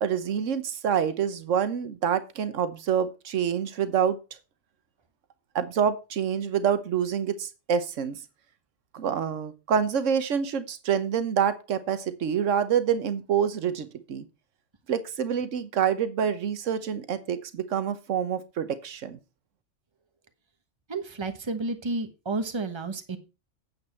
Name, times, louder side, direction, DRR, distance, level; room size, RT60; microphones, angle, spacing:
voice 1, 0.0-4.2 5.5-8.2 8.9-14.2 14.9-19.2, right 8 dB, 80° right, 12 dB, 1.3 m, -27 dB
voice 2, 20.9-23.2, right 3 dB, 25° right, 9 dB, 1.1 m, -31 dB
8.9 x 8.0 x 4.4 m, 0.29 s
omnidirectional pair, 1.3 m